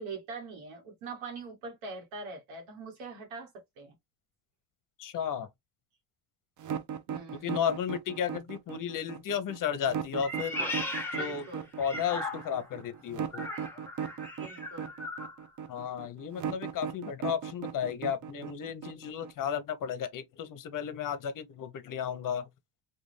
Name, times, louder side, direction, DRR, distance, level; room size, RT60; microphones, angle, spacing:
voice 1, 0.0-4.0 7.1-7.6 10.4-11.7 14.4-14.9, right 4 dB, 80° right, 1.1 m, -43 dB
voice 2, 5.0-5.5 7.4-10.6 11.1-11.5 11.8-13.5 15.7-22.5, left 8 dB, 45° left, 0.7 m, -33 dB
sound 1, 6.6-19.5, right 8 dB, 40° right, 0.5 m, -37 dB
Meow, 10.2-12.7 13.3-15.3, left 1 dB, 5° left, 0.9 m, -37 dB
2.5 x 2.3 x 3.1 m
supercardioid pair, 85°, 47 cm